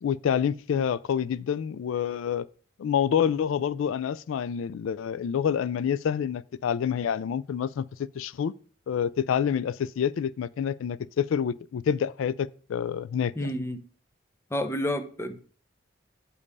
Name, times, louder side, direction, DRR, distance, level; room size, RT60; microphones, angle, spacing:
voice 1, 0.0-2.5 2.8-8.5 8.9-13.6, left 8 dB, 90° left, 0.3 m, -27 dB
voice 2, 13.4-13.8 14.5-15.4, left 1 dB, 15° left, 0.6 m, -30 dB
8.4 x 5.2 x 5.3 m
head